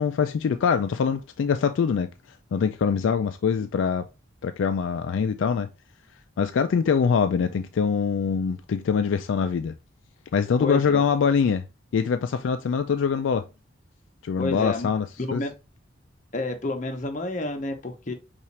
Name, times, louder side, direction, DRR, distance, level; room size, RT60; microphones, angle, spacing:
voice 1, 0.0-2.1 2.5-4.0 4.4-5.7 6.4-9.7 10.3-11.6 11.9-13.4 14.2-15.0 15.3-15.4, left 6 dB, 75° left, 0.3 m, -23 dB
voice 2, 10.6-11.1 14.4-14.9 15.2-15.5 16.3-18.1, left 2 dB, 40° left, 0.8 m, -29 dB
5.5 x 2.5 x 3.2 m
head